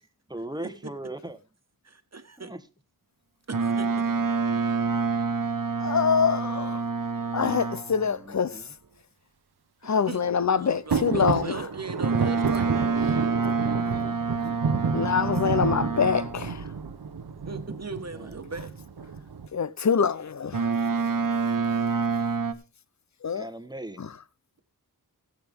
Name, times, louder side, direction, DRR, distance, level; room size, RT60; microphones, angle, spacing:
voice 1, 0.3-1.4 2.4-2.6 8.0-8.7 10.6-10.8 13.1-13.4 13.9-14.2 18.1-18.4 23.3-24.1, right 1 dB, 10° right, 1.2 m, -39 dB
voice 2, 1.8-2.5 3.5-3.9 9.8-10.2 10.6-12.9 17.4-18.7, right 3 dB, 45° right, 1.4 m, -38 dB
Boat Water vehicle, 3.5-8.0 12.0-16.5 20.5-22.5, right 4 dB, 60° right, 1.1 m, -27 dB
voice 3, 5.8-6.8 7.3-8.6 9.8-11.7 14.9-16.7 19.5-20.7 23.2-23.5 24.0-24.1, left 6 dB, 50° left, 0.6 m, -25 dB
sound 1, 10.9-19.5, right 5 dB, 90° right, 0.9 m, -31 dB
17.5 x 7.9 x 3.5 m
wide cardioid pair, 65°, 37 cm